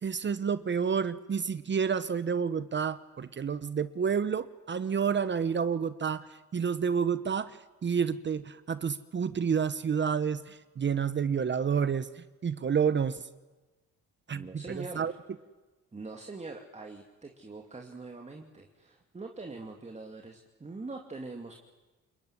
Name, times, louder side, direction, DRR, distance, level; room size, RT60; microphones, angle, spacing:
voice 1, 0.0-13.2 14.3-15.1, right 6 dB, 40° right, 14 dB, 1.0 m, -29 dB
voice 2, 14.3-15.2 15.9-21.5, right 3 dB, 20° right, 3 dB, 2.5 m, -43 dB
28.5 x 20.5 x 9.9 m, 1.2 s
cardioid pair, 90°, 30 cm